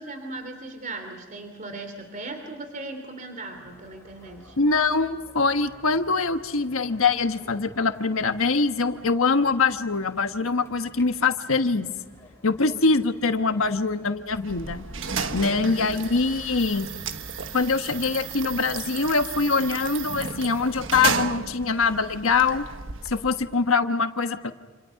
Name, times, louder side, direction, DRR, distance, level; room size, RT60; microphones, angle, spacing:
voice 1, 0.0-4.6 12.7-13.0 15.4-16.0, right 2 dB, 40° right, 6 dB, 3.2 m, -38 dB
sound 1, 3.5-16.3, left 1 dB, 15° left, 6.9 m, -52 dB
voice 2, 4.6-11.9 12.4-14.9 15.3-16.9 17.5-22.6 23.1-24.5, left 4 dB, 90° left, 8 dB, 1.3 m, -23 dB
sound 2, 14.3-23.6, right 5 dB, 65° right, 1.3 m, -33 dB
28.0 x 27.5 x 5.9 m, 1.4 s
head